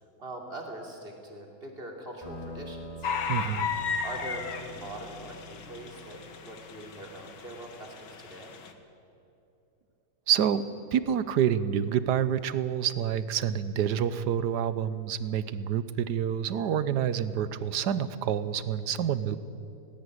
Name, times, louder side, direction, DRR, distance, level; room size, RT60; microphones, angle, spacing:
voice 1, 0.2-3.1 4.0-8.5, right 1 dB, 35° right, 1 dB, 3.2 m, -42 dB
sound 1, 2.2-7.3, right 1 dB, 20° left, 5.7 m, -46 dB
sound 2, 3.0-8.7, left 6 dB, 85° left, 2.0 m, -35 dB
voice 2, 3.3-3.7 10.3-10.6 10.9-19.4, right 9 dB, 75° right, 14 dB, 1.4 m, -28 dB
18.5 x 17.0 x 9.8 m, 2.7 s
omnidirectional pair, 1.8 m